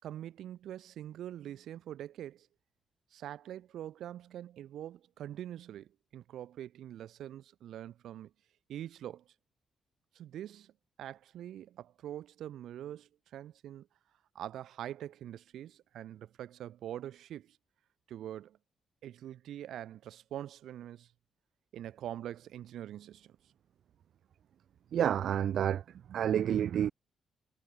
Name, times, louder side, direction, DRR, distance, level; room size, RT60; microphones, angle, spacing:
voice 1, 0.0-2.5 3.1-8.3 8.7-9.3 10.1-10.7 11.0-13.9 14.3-17.6 18.1-18.6 19.0-21.1 21.7-23.4, right 11 dB, 85° right, 3.8 m, -44 dB
voice 2, 24.9-26.9, right 9 dB, 70° right, 1.0 m, -29 dB
cardioid pair, 120°, 0 cm